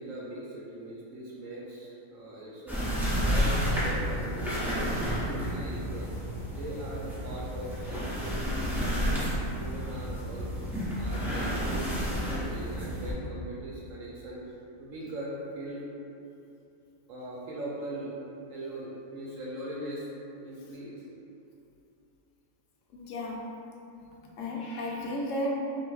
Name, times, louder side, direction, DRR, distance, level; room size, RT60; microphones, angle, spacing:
voice 1, 0.0-2.8 3.1-10.5 11.0-14.4 14.8-15.8 17.1-18.1 18.5-20.1 20.4-21.0, right 1 dB, 70° right, -5 dB, 1.0 m, -40 dB
sound 1, 2.7-13.1, equal, ahead, 0.6 m, -31 dB
voice 2, 22.9-23.4 24.4-25.5, left 1 dB, 70° left, -2 dB, 0.9 m, -33 dB
5.8 x 2.7 x 2.3 m, 2.8 s
omnidirectional pair, 1.5 m